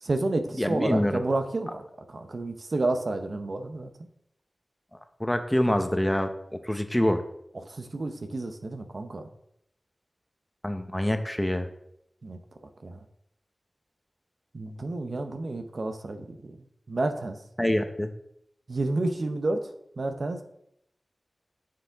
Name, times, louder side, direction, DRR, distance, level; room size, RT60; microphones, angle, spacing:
voice 1, 0.0-1.8 2.1-3.9 7.7-9.3 12.2-12.4 12.8-13.0 14.5-16.6 16.9-17.4 18.7-20.4, right 2 dB, 65° right, 6 dB, 0.8 m, -30 dB
voice 2, 0.6-1.2 5.2-6.3 6.6-7.2 10.6-11.7 17.6-18.1, left 1 dB, 15° left, 7 dB, 0.9 m, -25 dB
7.5 x 6.7 x 3.6 m, 0.75 s
cardioid pair, 40°, 0 cm